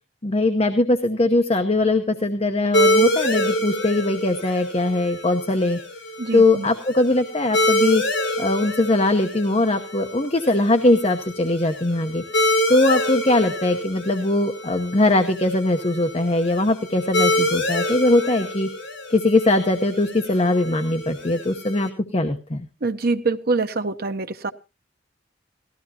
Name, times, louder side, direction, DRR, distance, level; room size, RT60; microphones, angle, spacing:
voice 1, 0.2-5.8 6.3-8.0 8.4-12.2 12.7-18.7 19.1-22.7, left 2 dB, 35° left, 0.9 m, -20 dB
sound 1, 2.7-21.9, equal, 90° left, 5.5 m, -26 dB
voice 2, 6.2-6.7 22.8-24.5, right 3 dB, 55° right, 0.9 m, -24 dB
19.0 x 14.5 x 2.9 m
head